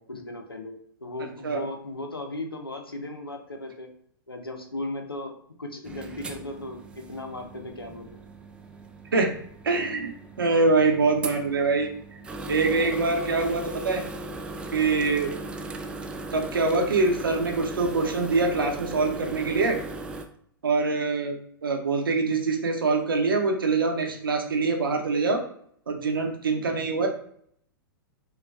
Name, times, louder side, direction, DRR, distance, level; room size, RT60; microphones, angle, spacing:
voice 1, 0.0-3.9 4.3-8.2, left 2 dB, 85° left, 4 dB, 0.6 m, -37 dB
sound 1, 5.8-20.3, right 2 dB, 10° right, 0.3 m, -38 dB
voice 2, 9.6-11.9 12.5-14.0 14.7-15.4 16.3-19.8 20.6-21.4 21.6-25.4 25.9-27.1, right 3 dB, 70° right, 3 dB, 0.7 m, -24 dB
5.4 x 2.3 x 2.3 m, 0.65 s
figure-of-eight pair, 100°, 12 cm